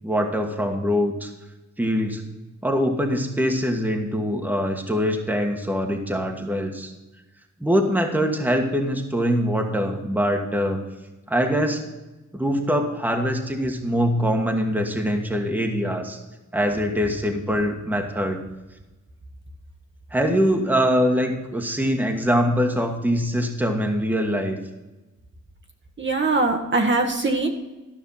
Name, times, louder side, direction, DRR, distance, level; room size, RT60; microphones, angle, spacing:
voice 1, 0.0-1.3 1.8-2.2 2.6-6.9 7.6-10.8 11.3-11.8 12.3-16.2 16.5-18.4 20.1-24.6, equal, 5° right, 3 dB, 1.5 m, -23 dB
voice 2, 26.0-27.5, right 3 dB, 35° right, 2 dB, 1.5 m, -21 dB
13.0 x 5.8 x 5.5 m, 1.1 s
cardioid pair, 80°, 31 cm